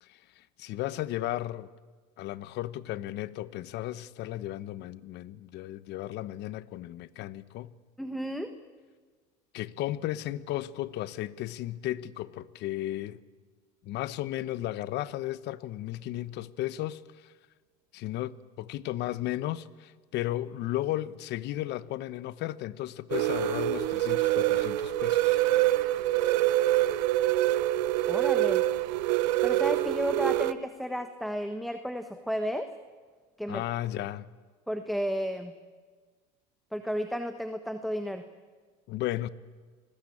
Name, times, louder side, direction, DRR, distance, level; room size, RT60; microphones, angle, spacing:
voice 1, 0.0-1.7 2.2-7.7 9.5-13.2 13.8-17.3 17.9-25.4 33.5-34.3 38.9-39.3, left 14 dB, 55° left, 1.1 m, -34 dB
voice 2, 8.0-8.5 28.1-28.6 29.4-32.7 33.4-33.6 34.7-35.5 36.7-38.2, equal, ahead, 1.3 m, -32 dB
sound 1, 23.1-30.5, right 15 dB, 80° right, 1.0 m, -25 dB
29.5 x 20.5 x 8.7 m
supercardioid pair, 115°, 21 cm